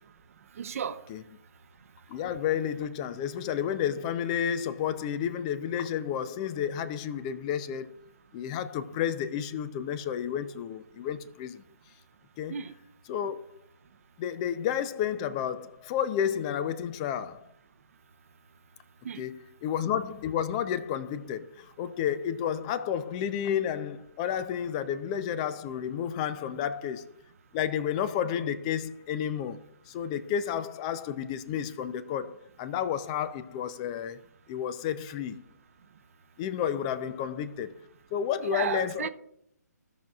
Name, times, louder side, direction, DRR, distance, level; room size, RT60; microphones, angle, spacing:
voice 1, 0.6-1.1 12.5-12.7 19.0-19.2 38.4-39.1, right 7 dB, 50° right, 0.6 m, -33 dB
voice 2, 2.1-7.9 8.3-11.6 12.4-12.5 13.1-13.4 14.2-17.5 19.2-19.3 19.6-27.1 27.5-34.2 34.5-35.4 36.4-37.7 38.1-39.1, left 9 dB, 20° left, 0.4 m, -31 dB
16.0 x 6.0 x 2.4 m
hypercardioid pair, 150°, 10 cm